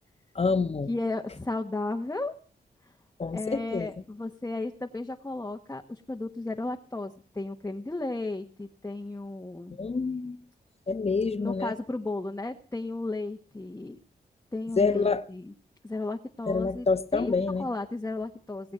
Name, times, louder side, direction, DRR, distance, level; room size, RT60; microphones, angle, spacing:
voice 1, 0.3-0.9 3.2-3.9 9.8-10.4 10.9-11.7 14.8-15.2 16.5-17.7, left 4 dB, 40° left, 1.1 m, -27 dB
voice 2, 0.9-2.3 3.3-9.7 11.4-14.0 14.5-15.5 15.8-16.9 17.1-18.7, left 2 dB, 15° left, 1.2 m, -34 dB
19.0 x 8.2 x 7.6 m
cardioid pair, 75°, 17 cm